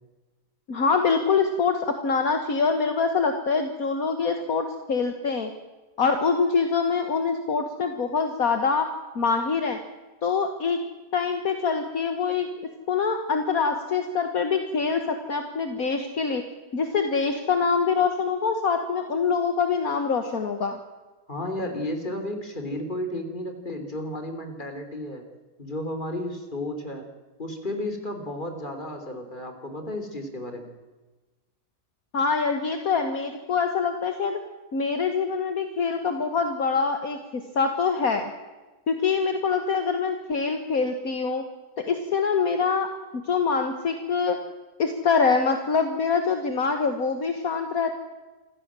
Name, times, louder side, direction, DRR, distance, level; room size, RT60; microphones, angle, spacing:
voice 1, 0.7-5.5 6.0-8.9 9.2-9.8 10.2-10.8 11.1-12.5 12.9-16.4 16.7-20.8 32.1-34.4 34.7-38.3 38.9-41.4 41.8-42.9 43.3-44.4 44.8-47.9, left 5 dB, 60° left, 6 dB, 1.9 m, -24 dB
voice 2, 21.3-25.3 25.6-27.1 27.4-30.7, left 1 dB, 30° left, 5 dB, 3.6 m, -33 dB
26.5 x 15.5 x 7.6 m, 1.2 s
omnidirectional pair, 1.7 m